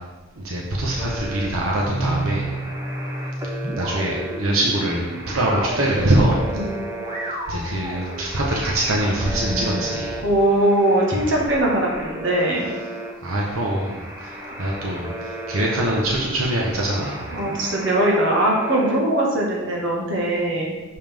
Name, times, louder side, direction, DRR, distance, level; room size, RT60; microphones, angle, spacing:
voice 1, 0.4-2.5 3.8-6.4 7.5-10.2 13.2-14.3 14.6-15.1 15.5-17.3, right 1 dB, 90° right, -2 dB, 1.1 m, -23 dB
sound 1, 1.0-19.0, right 1 dB, 15° right, 0.6 m, -35 dB
sound 2, 1.8-10.4, right 1 dB, 35° right, 1.2 m, -32 dB
voice 2, 10.2-12.7 17.3-20.7, right 1 dB, 60° right, -2 dB, 1.5 m, -20 dB
6.8 x 5.5 x 3.5 m, 1.2 s
head